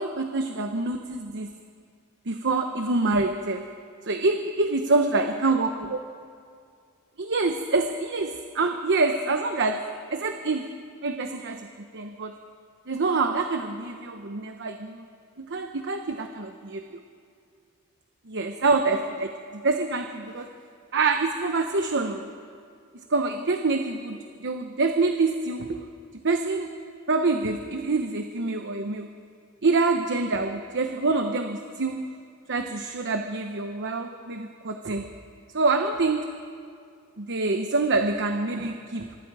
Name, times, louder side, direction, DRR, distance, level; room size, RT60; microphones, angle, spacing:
voice 1, 0.0-1.5 2.3-3.7 4.0-6.0 7.2-10.8 11.0-11.7 11.9-12.3 12.9-15.0 15.4-16.8 18.3-20.5 20.9-22.3 23.1-25.8 26.2-26.7 27.1-29.1 29.6-32.1 32.5-35.1 35.5-36.5 37.2-39.2, right 3 dB, 55° right, 5 dB, 1.0 m, -26 dB
25.0 x 24.5 x 4.9 m, 2.3 s
head